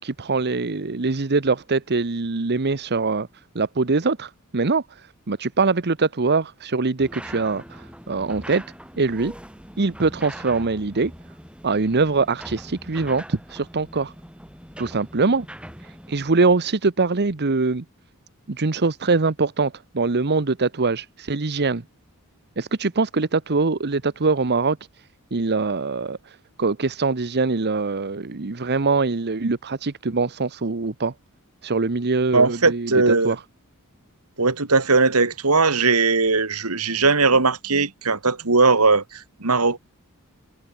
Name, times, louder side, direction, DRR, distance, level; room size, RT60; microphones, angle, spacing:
voice 1, 0.0-3.3 3.5-8.6 9.0-9.3 9.8-11.1 11.6-14.1 14.8-15.5 15.8-17.8 18.5-21.8 22.6-24.8 25.3-31.1 31.6-33.4, right 3 dB, 50° right, 1.0 m, -23 dB
sound 1, 7.0-16.6, equal, 5° right, 5.6 m, -42 dB
voice 2, 32.3-33.4 34.4-39.8, right 3 dB, 80° right, 2.8 m, -19 dB
head